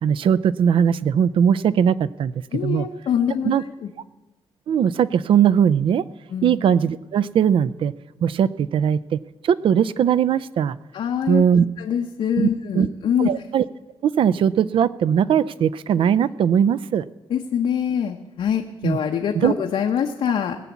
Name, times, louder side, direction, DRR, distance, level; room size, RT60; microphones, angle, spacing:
voice 1, 0.0-2.3 2.6-2.9 3.4-3.6 4.7-6.0 6.4-7.9 8.2-9.2 9.4-10.8 11.3-11.6 12.4-12.5 12.8-12.9 13.2-13.6 14.0-17.0 18.8-19.0 19.4-19.5, right 8 dB, 70° right, 18 dB, 0.4 m, -19 dB
voice 2, 2.5-3.9 6.3-6.5 10.9-11.4 11.8-13.4 17.3-20.6, left 8 dB, 90° left, 3 dB, 0.8 m, -24 dB
18.0 x 7.0 x 8.4 m, 1.1 s
wide cardioid pair, 170°, 9 cm